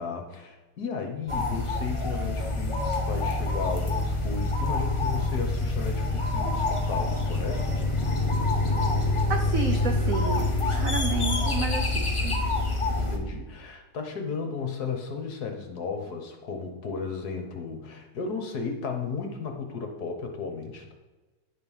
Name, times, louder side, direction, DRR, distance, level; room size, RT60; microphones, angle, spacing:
voice 1, 0.0-7.7 13.0-20.9, left 5 dB, 55° left, 4 dB, 1.5 m, -34 dB
sound 1, 1.3-13.2, left 2 dB, 30° left, 0.6 m, -26 dB
voice 2, 9.3-12.3, right 4 dB, 70° right, 4 dB, 0.7 m, -31 dB
10.0 x 5.1 x 5.4 m, 1.2 s
omnidirectional pair, 2.3 m